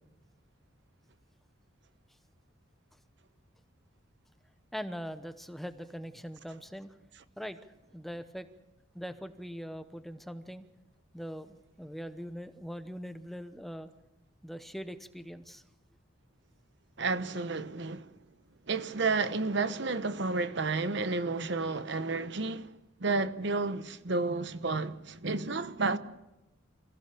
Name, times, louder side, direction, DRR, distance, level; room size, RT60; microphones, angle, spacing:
voice 1, 4.7-7.0 7.4-7.6 7.9-8.5 8.9-10.6 11.1-13.9 14.4-15.6, equal, ahead, 0.8 m, -41 dB
voice 2, 17.0-18.1 18.7-22.7 23.0-26.0, right 3 dB, 60° right, 1.0 m, -31 dB
27.5 x 16.0 x 6.9 m
head